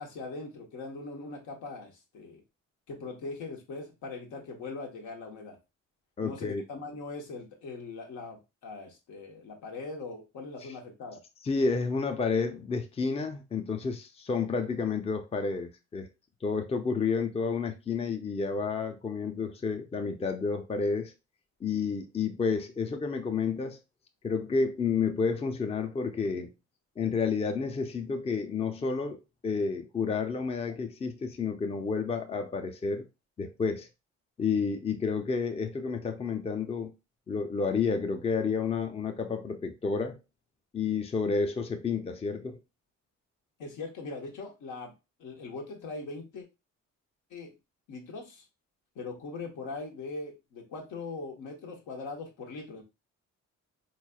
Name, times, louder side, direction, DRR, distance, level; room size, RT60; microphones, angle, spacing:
voice 1, 0.0-2.4 2.9-5.6 6.2-11.2 43.6-44.9 45.2-46.4 47.3-47.5 47.9-48.4 48.9-52.8, left 3 dB, 80° left, 1.2 m, -41 dB
voice 2, 6.2-6.6 11.4-16.1 16.4-21.1 21.6-23.8 24.2-26.5 27.0-33.1 33.4-33.9 34.4-36.9 37.3-40.2 40.7-42.6, left 5 dB, 20° left, 0.5 m, -30 dB
4.0 x 3.1 x 2.3 m
cardioid pair, 90°, 30 cm